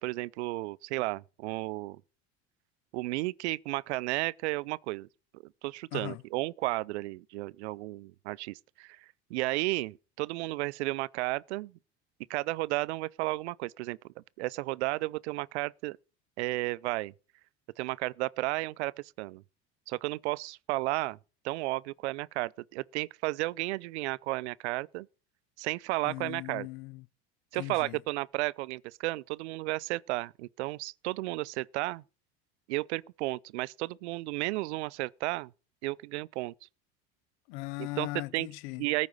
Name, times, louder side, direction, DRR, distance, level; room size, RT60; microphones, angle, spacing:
voice 1, 0.0-2.0 2.9-5.1 5.6-9.0 9.3-11.7 12.3-14.0 14.4-16.0 16.4-17.1 17.8-18.9 19.2-19.4 19.9-21.2 21.4-25.1 25.6-26.7 27.5-32.0 32.7-35.5 35.8-36.5 37.8-38.1 38.3-38.5 38.8-39.1, right 20 dB, 80° right, 0.6 m, -33 dB
voice 2, 5.9-6.2 26.0-27.1 27.6-28.0 37.5-38.8, left 21 dB, 70° left, 0.7 m, -39 dB
14.0 x 5.1 x 9.4 m
hypercardioid pair, 80°, 33 cm